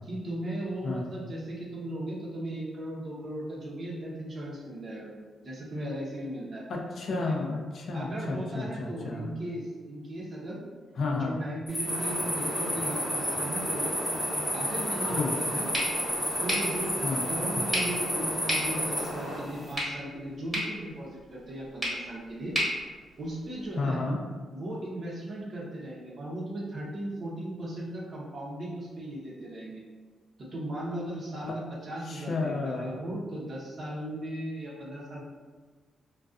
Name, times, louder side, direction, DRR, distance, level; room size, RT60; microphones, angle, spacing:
voice 1, 0.1-5.1 5.4-6.6 7.9-10.6 11.2-13.9 14.5-15.7 16.4-16.9 17.3-22.6 23.2-24.0 24.5-29.8 30.4-35.2, right 1 dB, 45° right, -4 dB, 0.6 m, -37 dB
voice 2, 6.7-9.3 11.0-11.4 15.1-15.3 17.0-17.2 23.8-24.2 31.5-31.6 32.0-33.0, left 3 dB, 60° left, 1 dB, 0.4 m, -31 dB
sound 1, 11.7-19.7, equal, 10° left, 0.7 m, -32 dB
sound 2, 11.8-19.4, equal, 90° right, 0.9 m, -36 dB
sound 3, 15.7-23.8, equal, 10° right, 1.1 m, -35 dB
2.5 x 2.2 x 2.3 m, 1.4 s
cardioid pair, 115°, 0 cm